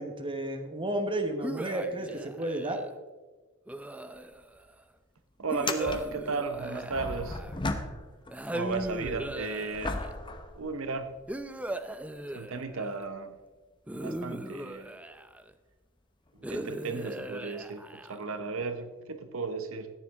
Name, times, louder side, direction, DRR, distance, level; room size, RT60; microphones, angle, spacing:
voice 1, 0.0-2.8, right 1 dB, 25° right, 5 dB, 1.1 m, -32 dB
sound 1, 1.4-2.9 3.7-4.6 5.5-7.7 8.3-10.2 11.3-13.0 13.9-15.5 16.4-18.4, right 1 dB, 5° right, 0.4 m, -38 dB
sound 2, 4.1-4.3 4.6-4.7 5.5-8.3 8.7-11.4 12.0-12.1 16.3-16.4 17.8-17.9, left 2 dB, 25° left, 0.9 m, -37 dB
voice 2, 5.4-7.4 8.5-10.0 10.6-11.1 12.3-13.4 13.9-15.0 16.4-19.9, right 4 dB, 75° right, 9 dB, 0.9 m, -35 dB
14.0 x 10.0 x 3.6 m, 1.3 s
head